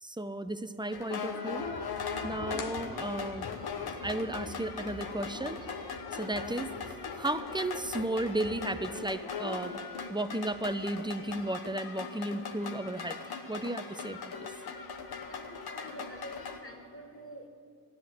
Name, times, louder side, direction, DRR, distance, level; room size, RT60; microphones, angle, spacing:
voice 1, 0.0-1.6 2.1-3.5 4.0-6.7 7.2-9.8 10.1-13.2 13.5-14.5, right 1 dB, 10° right, 11 dB, 0.7 m, -34 dB
sound 1, 0.9-16.6, left 5 dB, 85° left, 1.2 m, -39 dB
sound 2, 2.5-3.7, left 6 dB, 60° left, 0.8 m, -46 dB
voice 2, 15.3-17.5, equal, 35° left, 3 dB, 2.1 m, -47 dB
14.0 x 10.0 x 7.9 m, 2.2 s
cardioid pair, 60°, 37 cm